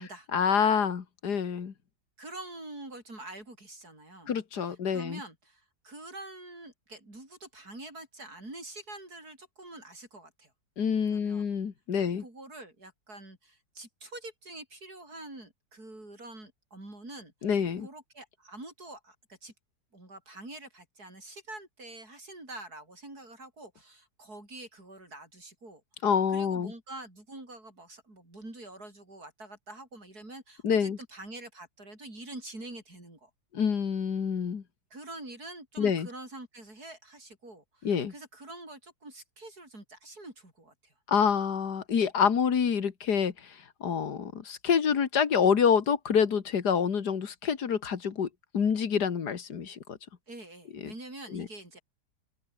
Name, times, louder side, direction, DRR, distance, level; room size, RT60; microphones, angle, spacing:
voice 1, 0.3-1.7 4.3-5.2 10.8-12.2 17.4-17.9 26.0-26.7 30.6-31.0 33.5-34.6 35.8-36.1 37.8-38.1 41.1-48.3 48.5-50.0 50.7-50.9 51.3-51.5, left 7 dB, 75° left, 2.4 m, -27 dB
voice 2, 2.2-10.5 11.1-11.5 11.9-17.5 17.8-19.5 19.9-33.3 34.9-40.9 50.3-51.8, right 2 dB, 65° right, 8.8 m, -46 dB
open air
omnidirectional pair, 1.8 m